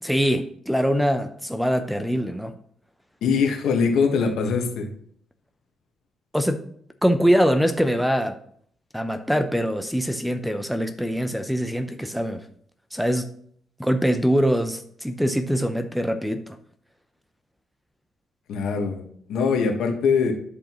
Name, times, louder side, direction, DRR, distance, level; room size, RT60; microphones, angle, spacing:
voice 1, 0.0-2.6 6.3-6.7 7.0-8.4 8.9-12.5 12.9-13.3 13.8-16.6, equal, ahead, 0.6 m, -23 dB
voice 2, 3.2-4.9 18.5-20.3, left 5 dB, 80° left, 1.5 m, -22 dB
11.0 x 5.2 x 3.1 m
cardioid pair, 90°, 0 cm